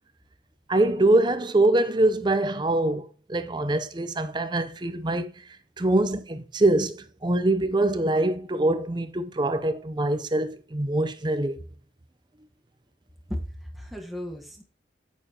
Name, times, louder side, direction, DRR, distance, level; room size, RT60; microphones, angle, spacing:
voice 1, 0.7-5.3 5.8-11.6, right 2 dB, 25° right, 0.6 m, -24 dB
voice 2, 13.3-14.6, equal, ahead, 1.4 m, -35 dB
8.7 x 7.4 x 2.9 m
head